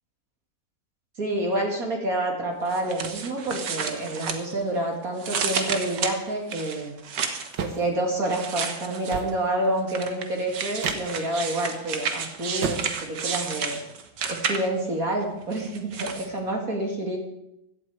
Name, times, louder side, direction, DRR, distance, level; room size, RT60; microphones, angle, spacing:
voice 1, 1.2-7.0 7.6-13.8 14.2-17.2, right 1 dB, 50° right, 0 dB, 2.7 m, -28 dB
sound 1, 2.7-4.8 5.2-7.6 8.3-9.3 9.9-14.9 15.5-16.3, right 6 dB, 70° right, 1.8 m, -31 dB
sound 2, 7.5-7.9 9.1-9.4 10.8-11.1 12.6-13.0, right 6 dB, 90° right, 1.8 m, -31 dB
15.5 x 11.5 x 4.8 m, 0.87 s
omnidirectional pair, 1.9 m